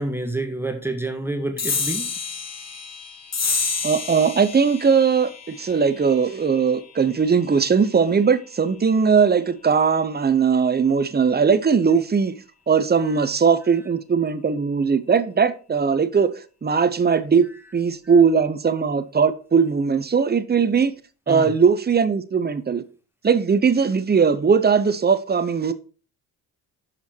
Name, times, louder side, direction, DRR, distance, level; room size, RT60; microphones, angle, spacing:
voice 1, 0.0-2.1 21.3-21.5, right 2 dB, 5° right, 1.6 m, -28 dB
sound 1, 1.6-8.4, left 5 dB, 40° left, 1.4 m, -30 dB
voice 2, 3.8-12.3 12.7-16.3 16.6-17.5 17.7-20.9 21.3-22.8 23.2-25.7, right 6 dB, 25° right, 0.8 m, -19 dB
6.9 x 5.6 x 4.5 m
supercardioid pair, 65°, 42 cm